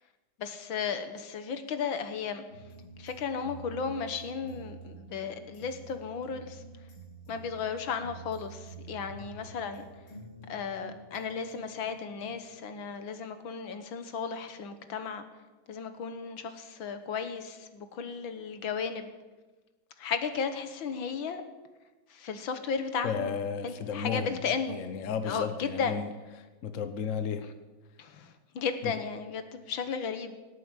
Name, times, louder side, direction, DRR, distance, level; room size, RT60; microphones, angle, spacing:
voice 1, 0.4-2.4 3.0-6.6 7.3-9.8 10.5-15.3 15.7-19.1 20.0-21.4 22.2-23.3 23.6-24.8 25.3-26.0 28.0-28.3 28.6-30.4, left 6 dB, 70° left, 9 dB, 1.9 m, -34 dB
sound 1, 2.5-13.6 13.9-14.0, right 3 dB, 90° left, 5.1 m, -48 dB
voice 2, 23.0-24.4 24.7-26.1 26.6-27.4 28.8-29.0, left 6 dB, 50° left, 10 dB, 1.1 m, -33 dB
17.5 x 8.3 x 9.0 m, 1.2 s
omnidirectional pair, 2.3 m